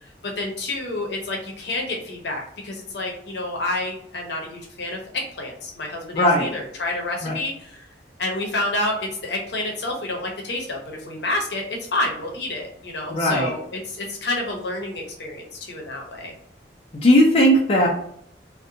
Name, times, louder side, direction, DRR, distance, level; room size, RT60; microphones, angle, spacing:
voice 1, 0.2-7.7 8.2-11.6 11.9-16.3, left 2 dB, 70° left, 0 dB, 0.7 m, -29 dB
voice 2, 6.1-6.4 7.2-7.4 13.1-13.5 17.0-17.9, equal, 35° left, -2 dB, 0.4 m, -17 dB
2.6 x 2.1 x 2.6 m, 0.69 s
head